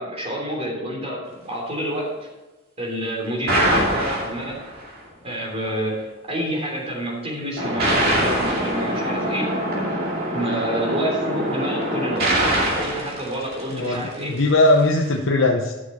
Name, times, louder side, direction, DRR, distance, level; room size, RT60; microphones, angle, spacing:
voice 1, 0.0-2.1 2.8-4.6 5.2-9.5 10.3-12.3 12.7-14.3, right 1 dB, 30° right, -1 dB, 3.2 m, -28 dB
sound 1, 3.5-4.9 7.6-14.1, right 1 dB, 50° right, 2.6 m, -23 dB
voice 2, 13.7-15.7, left 2 dB, 70° left, 1 dB, 0.8 m, -19 dB
11.0 x 6.4 x 5.6 m, 1.1 s
head